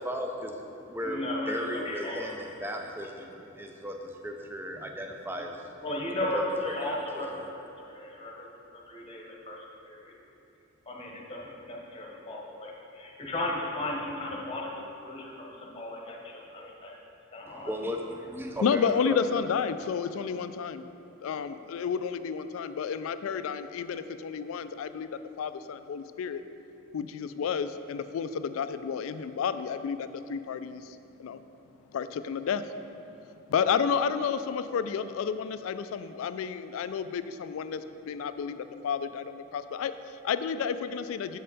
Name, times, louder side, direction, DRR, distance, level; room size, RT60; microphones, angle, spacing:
voice 1, 0.0-1.2 1.5-5.8 6.3-6.4 6.8-7.2 17.5-19.5, equal, 10° right, 3 dB, 0.5 m, -36 dB
voice 2, 1.0-2.3 5.8-7.5 7.8-8.5 8.9-10.1 10.9-16.9 17.3-17.7, left 1 dB, 25° left, -2 dB, 1.0 m, -35 dB
voice 3, 18.6-20.8 21.2-26.4 26.9-31.4 31.9-33.2 33.5-41.4, left 6 dB, 75° left, 11 dB, 0.3 m, -31 dB
7.5 x 5.5 x 4.0 m, 3.0 s
head